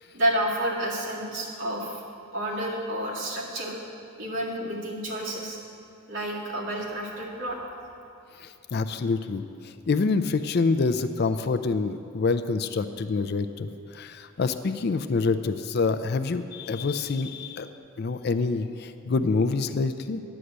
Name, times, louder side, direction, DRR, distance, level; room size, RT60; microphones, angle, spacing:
voice 1, 0.1-2.0 2.3-3.8 4.2-5.6 6.1-7.6, right 1 dB, 65° right, -4 dB, 2.0 m, -30 dB
voice 2, 8.4-17.7 18.0-20.2, left 4 dB, 50° left, 11 dB, 0.4 m, -26 dB
9.9 x 6.3 x 8.0 m, 2.5 s
head